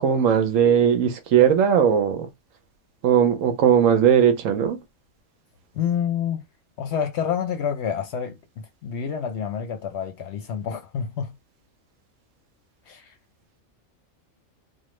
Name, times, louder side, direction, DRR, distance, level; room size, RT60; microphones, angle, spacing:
voice 1, 0.0-2.3 3.0-4.8, right 8 dB, 75° right, 1.0 m, -18 dB
voice 2, 5.7-6.4 6.8-8.4 8.8-11.3 12.9-13.1, left 8 dB, 65° left, 0.8 m, -28 dB
3.3 x 2.1 x 3.1 m
omnidirectional pair, 1.4 m